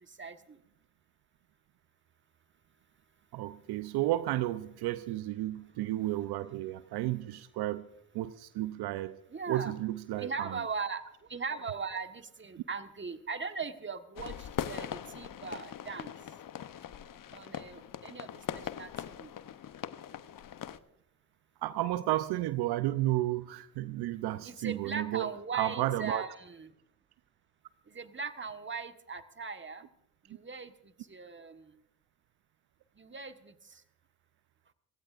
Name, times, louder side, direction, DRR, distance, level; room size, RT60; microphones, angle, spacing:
voice 1, 0.0-0.6 9.3-9.7 10.2-16.3 17.3-19.3 24.4-26.7 27.9-29.9 30.2-31.8 32.9-33.8, right 5 dB, 30° right, 8 dB, 1.5 m, -40 dB
voice 2, 3.3-7.9 8.1-9.2 9.5-10.6 21.6-25.3 25.5-26.3, right 15 dB, 75° right, 14 dB, 0.7 m, -32 dB
sound 1, 14.2-20.8, left 10 dB, 55° left, 0.9 m, -41 dB
26.0 x 16.5 x 2.5 m, 0.76 s
hypercardioid pair, 45°, 39 cm